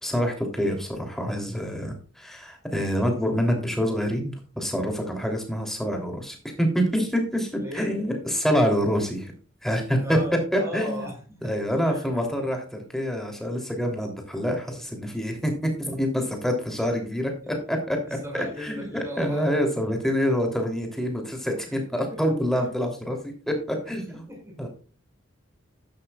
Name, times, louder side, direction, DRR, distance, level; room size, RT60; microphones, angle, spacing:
voice 1, 0.0-9.3 9.6-10.2 10.5-11.1 11.4-18.0 18.3-24.2 24.6-24.7, equal, ahead, 2 dB, 3.1 m, -26 dB
voice 2, 7.6-7.9 10.0-11.5 11.8-12.1 17.4-17.6 18.0-19.5 21.7-22.7 23.8-23.9 24.3-24.7, equal, 15° right, 0 dB, 6.1 m, -37 dB
12.5 x 11.5 x 2.4 m, 0.38 s
head